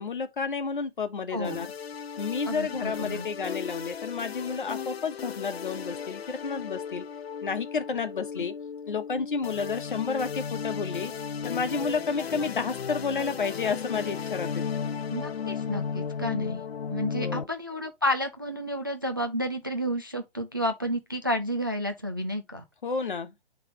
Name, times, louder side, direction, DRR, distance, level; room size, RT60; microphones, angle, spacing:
voice 1, 0.0-1.7 2.2-7.0 7.4-8.5 8.9-11.1 11.4-14.7 17.2-17.5 22.8-23.3, left 5 dB, 55° left, 1.2 m, -31 dB
voice 2, 1.3-1.7 2.5-3.3 15.1-16.6 16.9-22.6, equal, 25° right, 0.3 m, -31 dB
sound 1, 1.4-17.4, left 6 dB, 75° left, 0.5 m, -35 dB
9.9 x 3.3 x 3.1 m
figure-of-eight pair, 135°, 31 cm